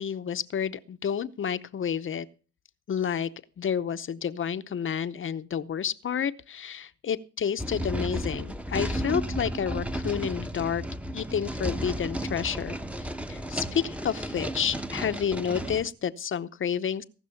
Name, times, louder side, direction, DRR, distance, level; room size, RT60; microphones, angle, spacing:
voice 1, 0.0-2.3 2.9-3.3 3.6-10.8 11.1-17.0, left 8 dB, 40° left, 13 dB, 0.8 m, -30 dB
sound 1, 7.6-15.9, right 1 dB, 5° right, 0.9 m, -33 dB
18.0 x 6.2 x 7.0 m, 0.37 s
cardioid pair, 90°, 30 cm